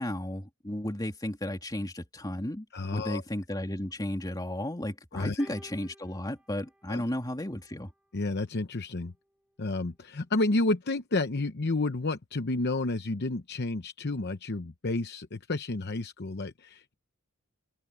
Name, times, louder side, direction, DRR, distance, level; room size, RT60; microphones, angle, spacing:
voice 1, 0.0-2.6 2.9-7.9, left 1 dB, 20° left, 2.8 m, -34 dB
voice 2, 2.7-3.2 5.1-5.5 6.9-7.0 8.1-9.1 9.6-16.9, left 2 dB, 50° left, 0.8 m, -30 dB
sound 1, 5.4-7.9 8.9-9.1, equal, 5° right, 3.4 m, -55 dB
head